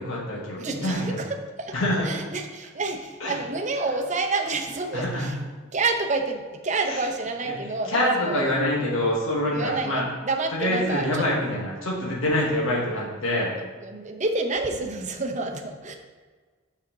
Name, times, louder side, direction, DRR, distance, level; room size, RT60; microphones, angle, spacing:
voice 1, 0.0-1.2 1.7-2.3 3.2-3.4 4.9-5.3 6.9-7.0 7.4-7.6 7.9-10.1 10.5-13.5, left 1 dB, 75° left, -3 dB, 1.2 m, -26 dB
voice 2, 0.6-1.7 2.0-5.4 5.7-8.6 9.5-11.2 13.8-16.0, right 3 dB, 35° right, 4 dB, 0.6 m, -28 dB
6.3 x 4.2 x 5.5 m, 1.4 s
head